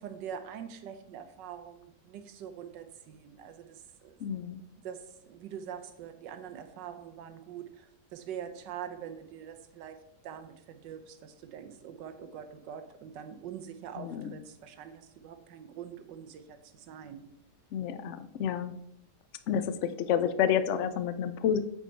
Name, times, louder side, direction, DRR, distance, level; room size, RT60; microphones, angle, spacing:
voice 1, 0.0-4.2 4.8-17.3, right 8 dB, 90° right, 9 dB, 1.4 m, -44 dB
voice 2, 4.2-4.6 14.0-14.4 17.7-18.7 19.5-21.6, left 8 dB, 70° left, 11 dB, 0.7 m, -29 dB
8.6 x 4.6 x 4.5 m, 0.76 s
omnidirectional pair, 1.9 m